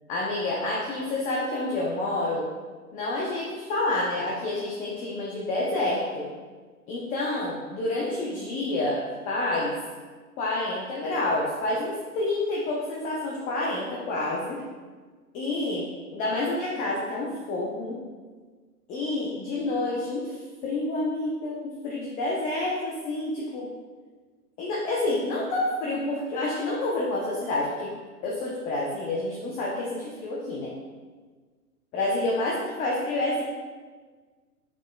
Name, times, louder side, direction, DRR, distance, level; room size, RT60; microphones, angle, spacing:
voice 1, 0.1-2.5 2.9-6.2 6.9-9.7 10.4-14.6 15.3-15.9 16.1-18.0 18.9-23.7 24.6-27.9 28.2-30.7 31.9-33.4, left 2 dB, 15° left, -4 dB, 0.6 m, -28 dB
8.9 x 5.4 x 2.2 m, 1.5 s
hypercardioid pair, 120°, 47 cm